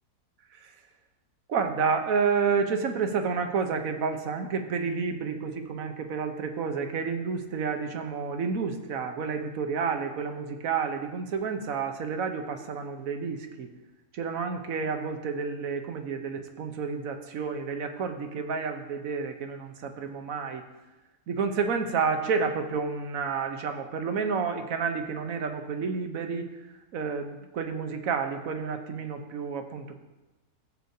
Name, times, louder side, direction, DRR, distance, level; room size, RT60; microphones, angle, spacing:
voice 1, 1.5-13.7 14.1-20.6 21.3-26.5 26.9-29.9, right 5 dB, 65° right, 6 dB, 1.2 m, -30 dB
13.5 x 8.0 x 2.7 m, 1.1 s
omnidirectional pair, 1.6 m